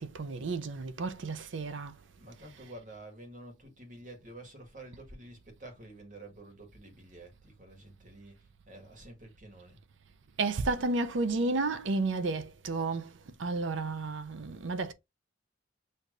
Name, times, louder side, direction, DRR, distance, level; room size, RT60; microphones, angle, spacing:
voice 1, 0.0-1.9 10.4-13.1 13.4-14.9, right 3 dB, 70° right, 0.5 m, -32 dB
voice 2, 2.2-9.8, right 1 dB, 40° right, 1.5 m, -49 dB
6.4 x 2.7 x 2.5 m
head